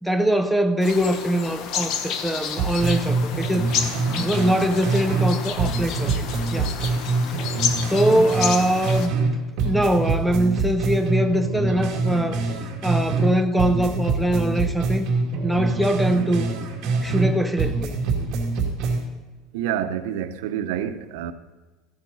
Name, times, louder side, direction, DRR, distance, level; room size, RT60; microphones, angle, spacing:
voice 1, 0.0-3.9 4.2-6.1 6.5-6.7 7.9-9.1 9.6-12.4 12.8-15.1 15.4-16.5 17.0-18.0, right 1 dB, ahead, 0.5 m, -22 dB
sound 1, 0.8-9.1, left 7 dB, 45° left, 1.0 m, -30 dB
sound 2, 2.6-5.3 5.6-9.3 9.6-13.3 13.6-17.3 17.6-19.0, right 3 dB, 45° right, 2.4 m, -25 dB
voice 2, 19.5-21.3, right 10 dB, 85° right, 0.8 m, -27 dB
14.5 x 9.7 x 4.1 m
cardioid pair, 165°, 0 cm